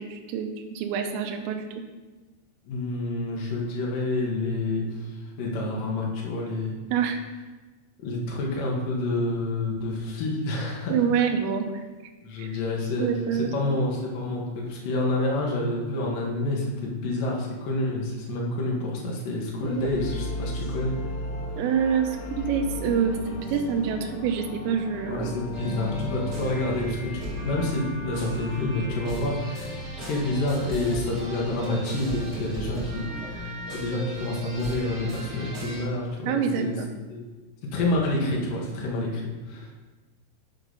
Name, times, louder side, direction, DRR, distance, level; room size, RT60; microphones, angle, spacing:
voice 1, 0.0-1.6 6.9-7.2 10.9-11.7 12.4-12.5 13.0-13.5 19.6-19.9 21.6-23.2 23.5-25.3 36.3-36.9, right 7 dB, 80° right, 4 dB, 2.8 m, -26 dB
voice 2, 2.7-6.8 8.0-10.9 12.2-20.9 25.1-36.8 37.1-37.2 37.7-39.7, left 2 dB, 65° left, -2 dB, 2.3 m, -28 dB
sound 1, 19.7-27.1, left 1 dB, 85° left, 3.2 m, -36 dB
sound 2, 25.5-35.8, equal, 30° right, 1.9 m, -35 dB
10.0 x 3.9 x 5.4 m, 1.2 s
omnidirectional pair, 5.7 m